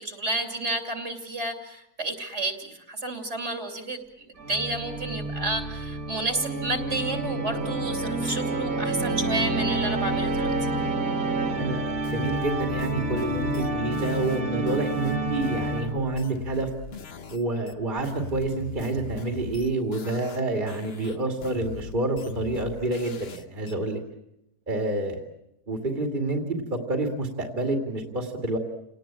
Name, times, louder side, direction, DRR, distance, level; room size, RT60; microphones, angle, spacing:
voice 1, 0.0-10.5, right 2 dB, 50° right, 5 dB, 3.2 m, -31 dB
Organ, 4.4-16.2, right 2 dB, 65° right, 3.1 m, -29 dB
voice 2, 11.5-16.7 17.3-24.0 24.7-25.2 25.7-26.6 26.9-28.6, right 2 dB, 30° right, 3 dB, 2.5 m, -28 dB
sound 1, 12.0-17.4 17.7-20.4 20.7-23.7, left 4 dB, 45° left, 1.3 m, -40 dB
28.5 x 19.0 x 8.8 m, 0.85 s
omnidirectional pair, 1.6 m